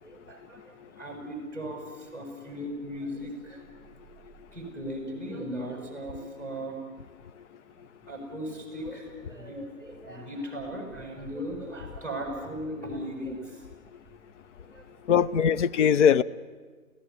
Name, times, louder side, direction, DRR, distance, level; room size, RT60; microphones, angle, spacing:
voice 1, 0.0-3.7 4.5-6.8 8.1-13.7 14.6-15.1, equal, 5° left, 1 dB, 6.7 m, -37 dB
voice 2, 15.1-16.2, left 8 dB, 55° left, 13 dB, 1.0 m, -21 dB
30.0 x 16.5 x 9.7 m, 1.5 s
hypercardioid pair, 135°, 43 cm